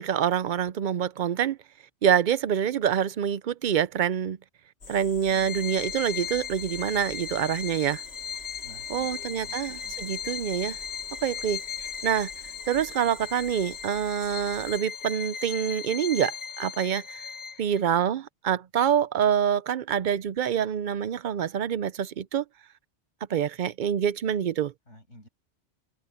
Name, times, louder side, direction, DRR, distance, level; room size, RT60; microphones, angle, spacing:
voice 1, 0.0-1.6 2.0-4.4 4.9-8.0 8.9-10.8 11.2-12.3 12.7-17.2 17.6-22.4 23.3-24.7, right 9 dB, 55° right, 0.6 m, -26 dB
sound 1, 4.8-14.8, left 4 dB, 65° left, 2.1 m, -47 dB
voice 2, 5.3-5.7 8.6-10.2 24.9-25.3, left 1 dB, 80° left, 7.3 m, -52 dB
Bowed string instrument, 5.3-17.8, left 8 dB, 40° left, 0.7 m, -37 dB
omnidirectional pair, 1.2 m